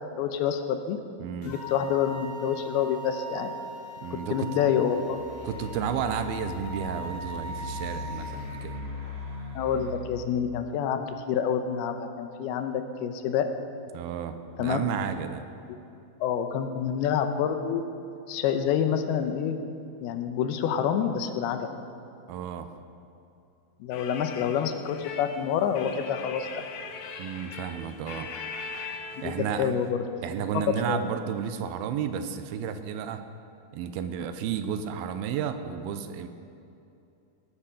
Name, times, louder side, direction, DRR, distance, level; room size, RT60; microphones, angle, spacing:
voice 1, 0.2-1.0 1.5-3.5 4.1-5.3 9.5-11.0 11.3-13.5 14.6-14.9 15.7-15.8 16.2-17.8 18.3-19.6 20.0-21.7 23.8-26.5 29.2-29.3 29.6-30.2 30.7-31.1, left 8 dB, 90° left, 7 dB, 2.8 m, -27 dB
voice 2, 1.2-1.5 4.0-4.5 5.4-8.8 13.9-15.4 22.3-22.7 27.2-28.3 29.2-29.7 30.2-33.2 33.7-36.3, right 8 dB, 85° right, 9 dB, 2.5 m, -32 dB
sound 1, 1.4-8.6, right 2 dB, 50° left, 3.9 m, -40 dB
sound 2, 5.0-10.0, left 3 dB, 60° right, 3.0 m, -39 dB
sound 3, 23.9-29.9, left 5 dB, 70° left, 1.9 m, -40 dB
18.5 x 9.0 x 5.7 m, 2.7 s
omnidirectional pair, 4.4 m